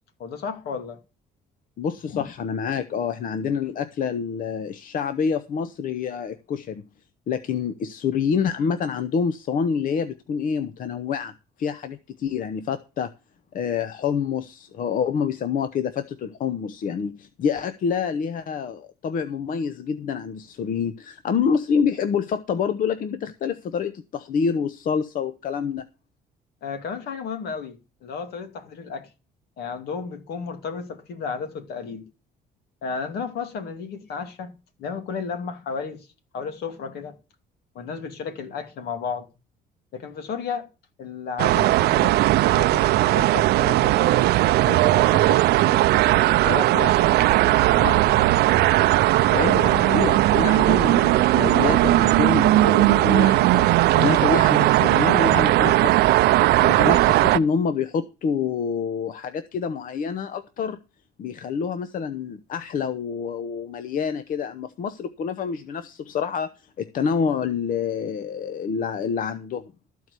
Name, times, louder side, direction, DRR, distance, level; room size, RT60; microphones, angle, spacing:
voice 1, 0.2-1.0 2.1-2.2 26.6-29.1 29.6-32.0 32.8-34.5 34.8-36.1 36.3-37.2 37.7-39.3 39.9-40.7 41.0-42.2 42.5-45.9 46.4-47.1 47.7-48.2 49.6-50.2, left 5 dB, 70° left, 2.4 m, -33 dB
voice 2, 1.8-6.8 7.3-13.1 13.5-25.8 49.3-56.1 56.6-60.8 61.2-69.7, left 6 dB, 55° left, 0.9 m, -27 dB
sound 1, 41.4-57.4, right 16 dB, 75° right, 0.6 m, -18 dB
13.5 x 4.7 x 8.2 m
cardioid pair, 110°, 17 cm